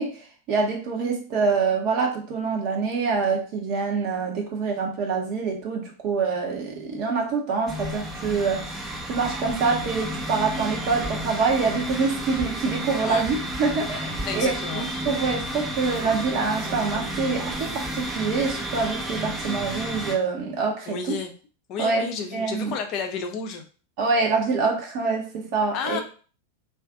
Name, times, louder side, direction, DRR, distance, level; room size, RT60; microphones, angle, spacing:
voice 1, 0.0-21.1 21.8-22.8 24.0-26.0, right 4 dB, 45° right, 0 dB, 0.8 m, -26 dB
sound 1, 7.7-20.2, right 1 dB, 15° right, 0.6 m, -31 dB
voice 2, 14.3-14.8 20.9-21.3 21.7-23.7 25.7-26.0, left 6 dB, 40° left, 5 dB, 0.6 m, -31 dB
2.5 x 2.4 x 3.6 m, 0.38 s
figure-of-eight pair, 90°, 0 cm